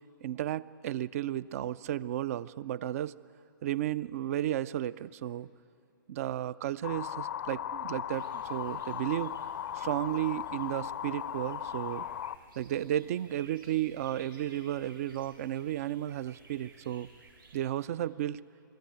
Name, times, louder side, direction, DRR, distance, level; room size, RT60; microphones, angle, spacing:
voice 1, 0.2-3.1 3.6-5.5 6.1-9.5 9.7-12.1 12.6-17.1 17.5-18.4, right 12 dB, 45° right, 19 dB, 0.5 m, -33 dB
sound 1, 6.8-12.4, left 10 dB, 60° left, 0.6 m, -37 dB
sound 2, 8.1-17.7, right 3 dB, 85° right, 4.0 m, -58 dB
21.5 x 14.0 x 9.0 m, 2.6 s
figure-of-eight pair, 125°, 11 cm